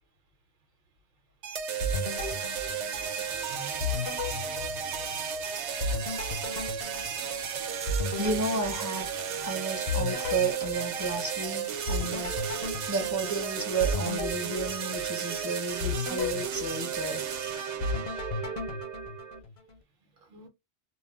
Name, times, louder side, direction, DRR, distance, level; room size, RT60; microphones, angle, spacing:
sound 1, 1.4-19.4, right 7 dB, 85° right, 0.9 m, -34 dB
sound 2, 1.8-3.4 3.8-5.4 5.8-9.5 9.9-11.5 11.9-15.3 15.8-17.4 17.8-19.8, left 3 dB, 70° left, 0.9 m, -35 dB
voice 1, 3.5-4.9 20.2-20.5, right 4 dB, 60° right, 0.8 m, -48 dB
voice 2, 8.2-9.1 9.4-12.5 12.9-17.2, right 3 dB, 25° right, 0.4 m, -32 dB
2.3 x 2.0 x 3.4 m
omnidirectional pair, 1.2 m